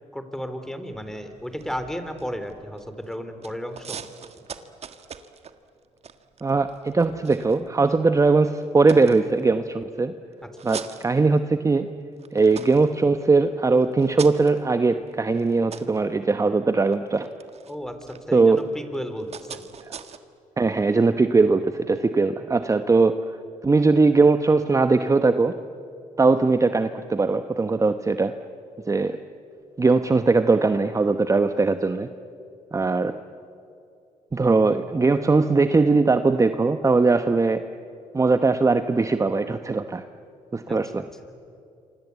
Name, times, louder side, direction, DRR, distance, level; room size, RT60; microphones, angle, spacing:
voice 1, 0.1-4.0 10.4-10.5 17.7-18.0 18.3-19.6 40.7-40.8, equal, 5° left, 8 dB, 3.5 m, -33 dB
sound 1, 0.9-3.1 3.4-8.1 8.6-9.8 10.3-11.8 12.1-20.2, right 7 dB, 50° right, 1.6 m, -42 dB
voice 2, 6.4-10.1 10.6-11.9 12.3-17.3 18.3-18.6 20.6-23.2 23.6-25.5 26.2-28.3 28.9-29.2 29.8-32.1 32.7-33.1 34.3-37.6 38.1-40.0 40.5-41.0, right 3 dB, 25° right, 9 dB, 1.0 m, -20 dB
27.5 x 26.0 x 8.3 m, 2.5 s
cardioid pair, 85°, 13 cm